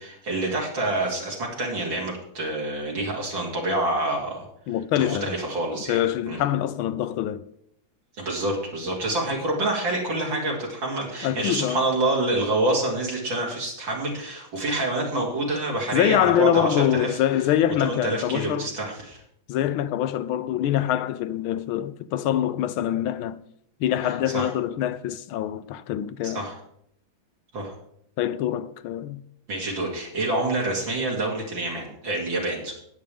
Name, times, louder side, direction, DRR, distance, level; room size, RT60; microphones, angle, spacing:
voice 1, 0.0-4.5 5.0-6.4 8.2-17.2 17.8-19.2 24.0-24.5 26.2-26.6 27.5-27.7 29.5-32.7, right 2 dB, 70° right, 3.4 m, -27 dB
voice 2, 4.7-5.3 5.9-7.4 11.2-11.9 15.9-18.7 19.5-23.4 23.8-26.4 28.2-29.2, left 11 dB, 90° left, 1.5 m, -24 dB
19.0 x 7.4 x 3.5 m
omnidirectional pair, 2.2 m